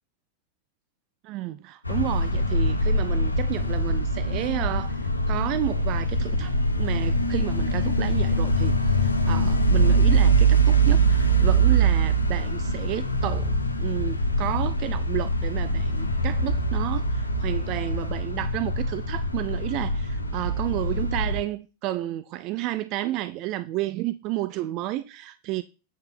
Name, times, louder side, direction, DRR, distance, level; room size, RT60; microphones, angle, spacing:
voice 1, 1.2-25.6, right 15 dB, 40° right, 0.5 m, -31 dB
sound 1, 1.9-21.4, right 2 dB, 85° left, 1.2 m, -23 dB
8.8 x 5.4 x 5.8 m
figure-of-eight pair, 90°, 0 cm